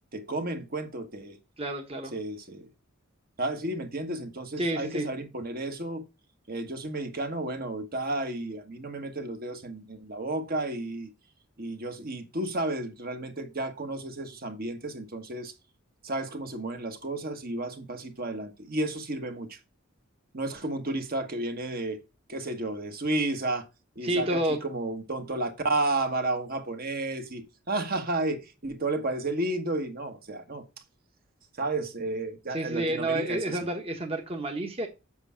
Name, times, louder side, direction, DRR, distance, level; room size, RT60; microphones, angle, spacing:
voice 1, 0.1-1.4 2.1-2.7 3.4-6.0 6.5-11.1 11.6-15.5 16.0-19.6 20.3-22.0 22.3-23.7 23.9-30.6 31.6-33.6, right 2 dB, 45° right, 1.4 m, -32 dB
voice 2, 1.6-2.1 4.6-5.1 24.0-24.6 32.5-34.9, right 1 dB, 30° right, 1.2 m, -29 dB
8.1 x 6.2 x 5.7 m
head